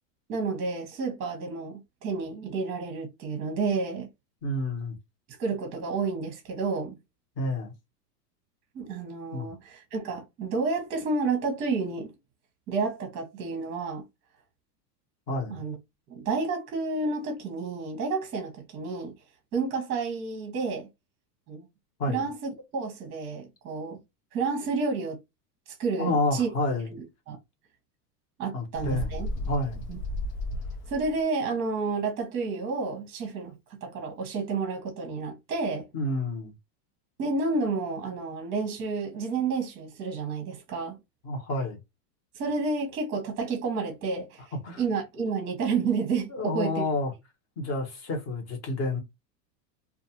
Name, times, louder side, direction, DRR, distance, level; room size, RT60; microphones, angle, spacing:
voice 1, 0.3-4.1 5.4-6.9 8.7-12.1 12.7-14.0 15.5-15.8 16.1-19.1 19.5-20.9 21.5-21.6 22.1-24.0 24.3-25.2 25.8-26.5 26.9-27.4 28.4-29.3 29.9-30.0 30.9-35.9 37.2-41.0 42.3-44.4 44.7-46.8, right 4 dB, 25° right, 0.7 m, -30 dB
voice 2, 4.4-5.0 7.4-7.7 9.3-9.5 15.3-15.6 22.0-22.3 26.0-26.9 28.5-29.1 29.5-29.8 35.9-36.5 41.2-41.8 44.6-44.8 46.3-47.1 47.6-49.0, left 2 dB, 30° left, 1.0 m, -29 dB
Bird, 28.8-31.2, left 1 dB, 70° left, 0.9 m, -33 dB
2.4 x 2.3 x 2.8 m
supercardioid pair, 140°, 50 cm